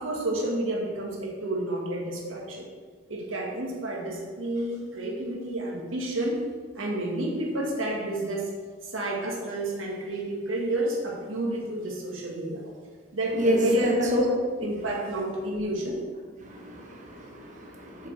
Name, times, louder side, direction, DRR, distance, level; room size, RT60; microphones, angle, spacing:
voice 1, 0.0-2.6 3.1-6.4 6.7-8.5 8.8-12.8 13.1-16.0, right 1 dB, 85° right, -2 dB, 1.7 m, -30 dB
voice 2, 13.8-14.2 16.4-18.1, equal, 40° right, 0 dB, 1.2 m, -28 dB
7.9 x 6.5 x 3.4 m, 1.5 s
head